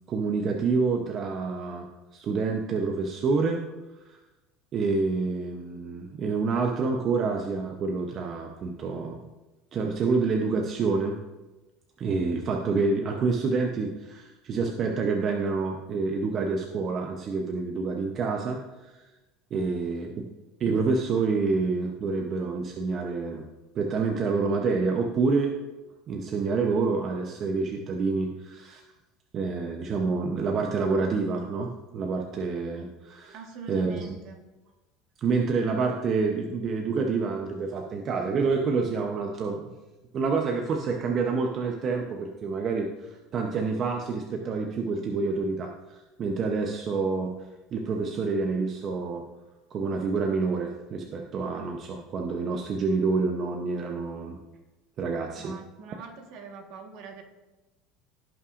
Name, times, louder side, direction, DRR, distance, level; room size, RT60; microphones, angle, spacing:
voice 1, 0.1-3.6 4.1-4.2 4.7-9.2 9.7-11.2 12.0-19.0 19.5-20.3 20.6-23.5 23.7-25.5 26.1-28.8 29.3-33.3 33.7-34.1 35.2-39.6 40.1-47.3 47.7-49.2 49.7-54.4 55.0-55.5, right 4 dB, 35° right, 2 dB, 0.7 m, -28 dB
voice 2, 19.5-19.9 33.3-34.4 55.4-57.2, right 4 dB, 60° right, 4 dB, 1.4 m, -43 dB
16.0 x 5.6 x 2.5 m, 1.1 s
cardioid pair, 140°, 0 cm